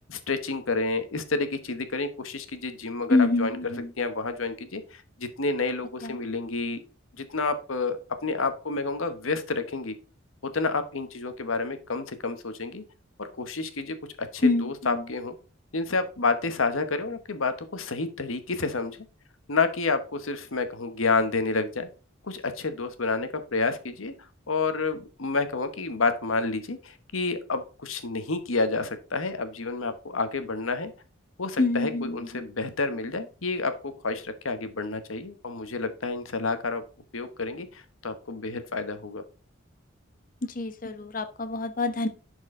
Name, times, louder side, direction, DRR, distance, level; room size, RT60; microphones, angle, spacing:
voice 1, 0.1-6.8 7.1-9.9 10.4-12.8 13.2-15.4 15.7-19.0 19.5-21.9 22.2-30.9 31.4-36.8 37.1-39.2 41.0-41.1, left 3 dB, 85° left, 9 dB, 1.1 m, -29 dB
voice 2, 3.1-3.5 6.0-6.1 14.4-14.7 31.6-32.1 40.5-42.1, left 3 dB, 40° left, 8 dB, 1.0 m, -24 dB
11.0 x 4.7 x 3.7 m, 0.34 s
head